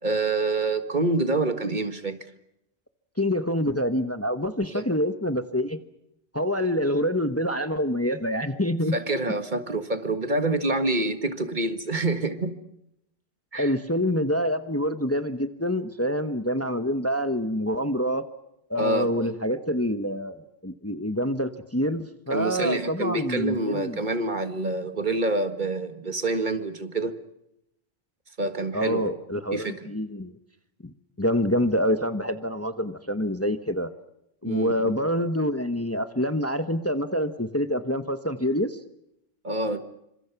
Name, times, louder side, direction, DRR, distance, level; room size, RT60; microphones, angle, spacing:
voice 1, 0.0-2.3 4.7-4.8 8.9-12.5 13.5-13.7 18.8-19.3 22.3-27.2 28.4-29.2 29.5-29.7 34.4-34.9 39.4-39.8, right 2 dB, 50° right, 9 dB, 1.8 m, -27 dB
voice 2, 3.2-5.8 6.3-9.0 13.6-18.2 18.7-24.0 28.7-30.3 30.8-30.9 31.2-33.9 34.4-38.8, equal, 15° left, 10 dB, 1.1 m, -26 dB
29.0 x 26.0 x 5.9 m, 0.82 s
omnidirectional pair, 1.1 m